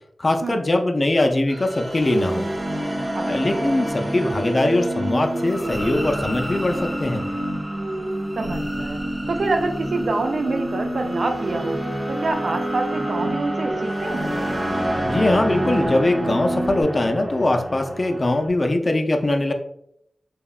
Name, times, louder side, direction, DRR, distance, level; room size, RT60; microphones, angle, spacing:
voice 1, 0.2-2.5 3.3-7.2 14.7-19.5, left 2 dB, 40° left, 4 dB, 0.3 m, -21 dB
sound 1, 1.5-18.5, right 1 dB, 15° right, 0.5 m, -30 dB
sound 2, 2.0-16.8, right 1 dB, 45° right, 1.0 m, -29 dB
voice 2, 8.3-14.3, right 3 dB, 70° right, 5 dB, 0.3 m, -27 dB
2.8 x 2.0 x 2.3 m, 0.74 s
wide cardioid pair, 65°, 0 cm